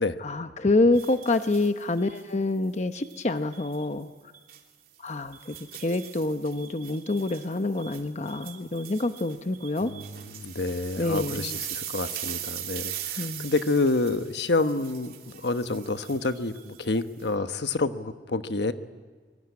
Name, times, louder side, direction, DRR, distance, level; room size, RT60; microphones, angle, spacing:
voice 1, 0.2-4.1 5.0-9.9 11.0-11.6 13.2-13.5, left 2 dB, 40° left, 9 dB, 0.9 m, -27 dB
sound 1, 0.9-2.2 2.9-3.9 4.3-4.6 5.1-17.3, right 11 dB, 55° right, 3.2 m, -40 dB
voice 2, 9.8-18.7, left 3 dB, 75° left, 9 dB, 1.2 m, -28 dB
24.5 x 23.0 x 9.6 m, 1.5 s
head